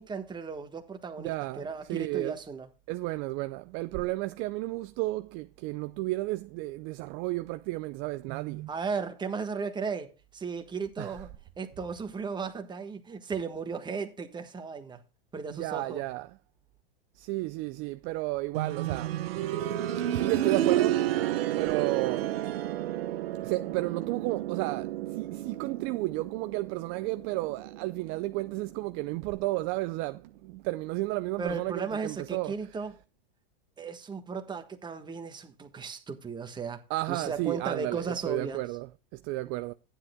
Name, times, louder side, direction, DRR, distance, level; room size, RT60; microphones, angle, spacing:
voice 1, 0.0-2.7 8.7-11.3 11.6-15.0 15.3-16.0 31.4-32.9 33.8-36.8 37.1-38.6, right 5 dB, 15° right, 1.3 m, -35 dB
voice 2, 1.2-2.4 2.9-8.7 11.0-11.3 15.5-16.4 17.1-19.2 20.1-21.1 21.5-22.3 23.4-32.8 36.9-39.7, right 19 dB, 45° right, 0.5 m, -33 dB
sound 1, 18.5-29.3 30.7-30.8, right 12 dB, 80° right, 1.1 m, -31 dB
14.5 x 10.0 x 2.2 m
supercardioid pair, 125°, 29 cm